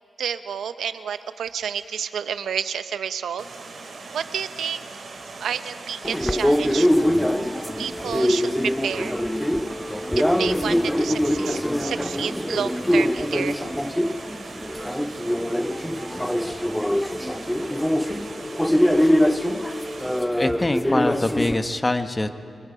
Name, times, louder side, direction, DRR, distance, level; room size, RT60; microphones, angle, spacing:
voice 1, 0.2-3.5 4.1-4.8 5.4-6.9 7.8-9.1 10.2-13.6, right 8 dB, 90° right, 11 dB, 0.7 m, -30 dB
Water, 3.4-20.2, right 3 dB, 65° right, 3.3 m, -40 dB
sound 1, 6.0-21.6, equal, 5° left, 0.7 m, -23 dB
voice 2, 20.4-22.3, left 2 dB, 25° left, 8 dB, 1.3 m, -24 dB
24.5 x 21.5 x 5.1 m, 2.8 s
cardioid pair, 55°, 0 cm